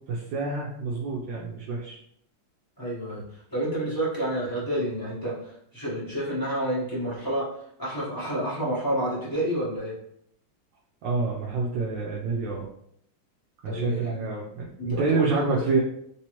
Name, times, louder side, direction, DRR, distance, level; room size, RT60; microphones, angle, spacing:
voice 1, 0.0-2.0 11.0-12.7 13.6-15.8, right 3 dB, 70° right, -3 dB, 1.2 m, -28 dB
voice 2, 2.8-3.2 3.5-7.5 7.8-9.9 13.6-14.2 14.8-15.6, right 1 dB, 15° left, -9 dB, 0.7 m, -29 dB
3.3 x 3.2 x 2.9 m, 0.70 s
omnidirectional pair, 2.4 m